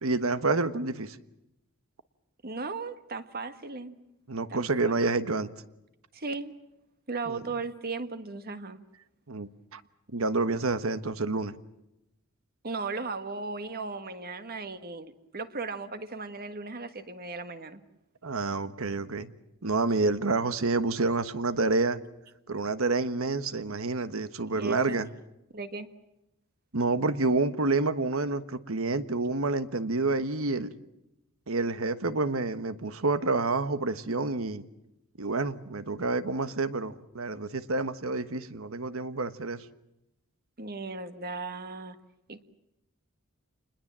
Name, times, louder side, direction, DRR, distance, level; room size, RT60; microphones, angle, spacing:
voice 1, 0.0-1.2 4.3-5.5 7.3-7.4 9.3-9.8 10.1-11.6 18.2-19.3 19.6-22.0 22.5-25.1 26.7-30.7 31.5-34.6 35.2-39.6, right 3 dB, 70° right, 12 dB, 1.3 m, -28 dB
voice 2, 2.4-4.0 4.5-4.7 6.1-6.5 7.1-8.8 12.6-17.8 24.5-25.0 25.5-25.9 40.6-42.0 42.3-42.4, right 3 dB, 45° right, 10 dB, 1.7 m, -36 dB
28.5 x 21.0 x 7.5 m, 0.89 s
head